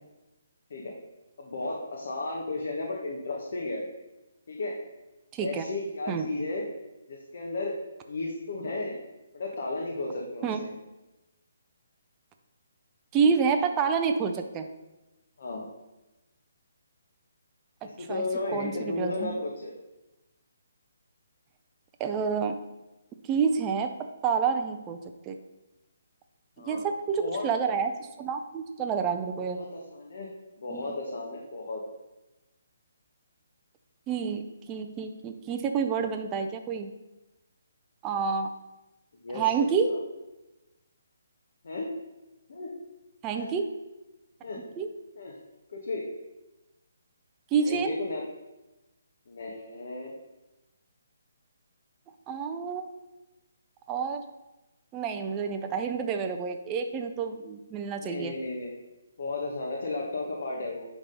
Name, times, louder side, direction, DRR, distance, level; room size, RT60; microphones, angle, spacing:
voice 1, 1.4-3.8 4.5-4.8 5.4-6.6 7.1-7.8 8.1-9.0 9.3-10.5 15.4-15.7 17.8-19.7 26.6-26.8 27.2-27.5 29.4-30.3 30.6-31.8 39.2-40.0 41.6-41.9 42.5-42.7 43.3-43.5 44.4-44.7 45.1-45.4 45.7-46.0 47.6-48.2 49.3-50.1 58.0-58.7 59.2-60.9, left 2 dB, 50° left, -2 dB, 1.3 m, -34 dB
voice 2, 5.3-5.7 6.1-6.3 10.4-10.6 13.1-14.7 18.0-18.2 18.5-19.3 22.0-22.6 23.3-23.9 24.2-25.0 25.3-25.4 26.7-27.9 28.2-29.6 30.7-30.9 34.1-36.9 38.0-38.5 39.3-39.9 43.2-43.6 44.8-44.9 47.5-48.0 52.3-52.9 53.9-54.2 54.9-58.3, right 6 dB, 15° right, 5 dB, 0.4 m, -28 dB
10.0 x 3.5 x 5.3 m, 1.0 s
hypercardioid pair, 175°, 0 cm